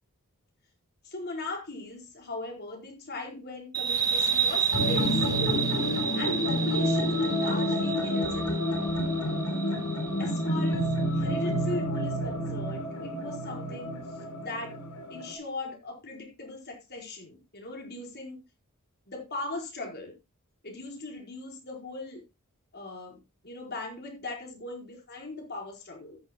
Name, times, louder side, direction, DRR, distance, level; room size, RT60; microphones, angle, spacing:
voice 1, 1.0-5.7 6.1-8.5 10.2-14.0 14.4-14.7 15.1-18.4 19.1-20.1 20.6-22.2 22.7-23.2 23.4-26.2, left 2 dB, 50° left, 2 dB, 4.6 m, -39 dB
sound 1, 3.7-10.9, right 6 dB, 15° right, 2.0 m, -31 dB
sound 2, 4.7-15.3, equal, 80° left, 4.0 m, -29 dB
14.0 x 11.5 x 2.3 m, 0.24 s
head